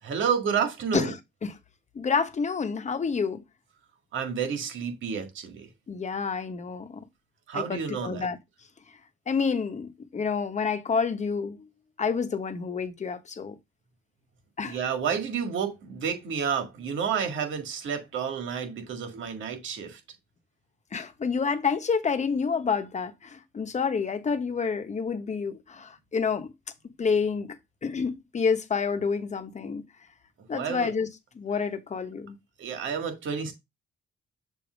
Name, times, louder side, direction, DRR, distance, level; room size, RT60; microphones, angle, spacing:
voice 1, 0.0-1.1 4.1-5.7 7.5-8.3 14.6-20.0 30.5-30.9 32.6-33.5, right 7 dB, 75° right, 1.8 m, -30 dB
voice 2, 1.9-3.4 5.9-7.0 7.5-8.4 9.3-11.6 12.0-13.6 14.6-14.8 20.9-26.5 27.0-27.6 27.8-29.8 30.5-31.1 31.4-32.4, left 5 dB, 35° left, 1.1 m, -28 dB
6.9 x 2.9 x 5.1 m
cardioid pair, 90°, 20 cm